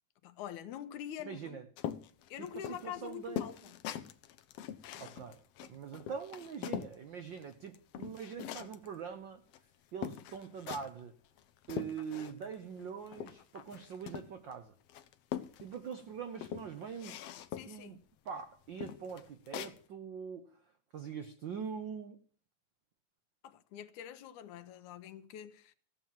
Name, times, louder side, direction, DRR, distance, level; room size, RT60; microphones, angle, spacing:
voice 1, 0.2-1.6 2.3-3.7 17.5-18.0 23.4-25.7, left 10 dB, 85° left, 2.3 m, -45 dB
voice 2, 1.2-1.6 2.4-3.5 5.0-9.4 9.9-11.2 11.7-14.7 15.6-17.2 17.6-18.0 18.2-20.6 20.9-22.2, right 7 dB, 80° right, 1.0 m, -43 dB
sound 1, 1.8-7.0 7.4-8.9 9.5-9.6 10.0-11.0 11.4-12.5 12.8-14.5 14.9-15.9 16.3-17.8 18.3-18.4 18.8-19.8, left 10 dB, 70° left, 1.6 m, -42 dB
15.0 x 7.3 x 7.5 m
omnidirectional pair, 3.4 m